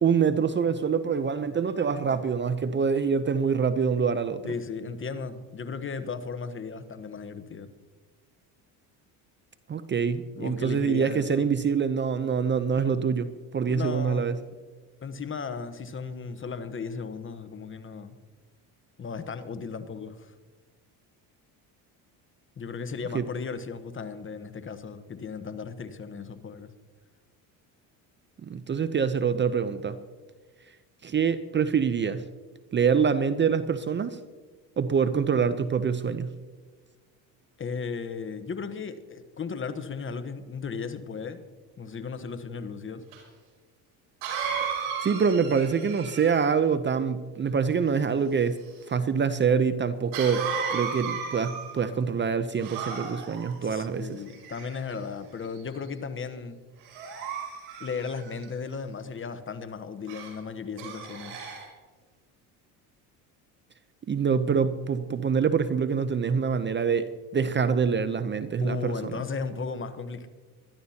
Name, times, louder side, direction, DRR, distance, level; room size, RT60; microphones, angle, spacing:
voice 1, 0.0-4.4 9.7-14.4 23.1-23.2 28.4-30.0 31.0-32.2 32.7-34.2 34.8-36.3 44.6-48.6 48.9-54.1 64.1-69.1, right 6 dB, 25° right, 0.6 m, -25 dB
voice 2, 4.4-7.7 10.4-11.4 13.6-14.3 15.0-18.2 19.0-20.3 22.6-26.7 37.6-41.4 41.8-43.0 53.6-56.6 57.8-61.4 68.6-70.3, left 5 dB, 30° left, 1.1 m, -36 dB
Cough, 43.1-43.2 44.2-46.6 50.1-51.9 52.6-53.5 54.3-54.9 55.5-55.8 56.8-58.4 60.1-60.3 60.8-61.7, right 6 dB, 85° right, 5.4 m, -34 dB
22.5 x 12.5 x 2.9 m
supercardioid pair, 90°, 41 cm